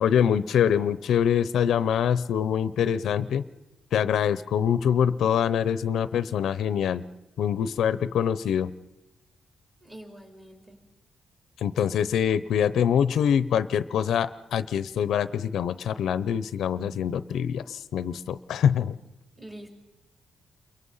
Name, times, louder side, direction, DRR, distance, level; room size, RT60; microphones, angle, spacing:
voice 1, 0.0-3.4 3.9-7.0 7.4-8.7 11.6-19.0, left 8 dB, 80° left, 15 dB, 0.7 m, -24 dB
voice 2, 9.8-10.8 19.4-19.7, right 1 dB, 15° right, 2 dB, 4.6 m, -45 dB
29.0 x 23.0 x 5.6 m, 0.99 s
cardioid pair, 135°, 0 cm